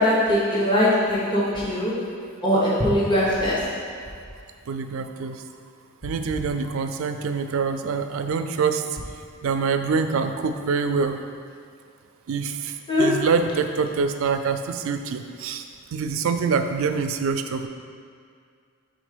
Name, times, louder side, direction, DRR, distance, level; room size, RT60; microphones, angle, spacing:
voice 1, 0.0-1.9 2.4-3.6 12.9-13.1, left 1 dB, 20° left, -8 dB, 1.0 m, -21 dB
voice 2, 4.7-5.4 6.0-8.8 9.4-11.2 12.3-12.7 13.0-15.6 15.9-17.7, right 5 dB, 70° right, 7 dB, 0.4 m, -25 dB
5.2 x 3.7 x 5.0 m, 2.2 s
head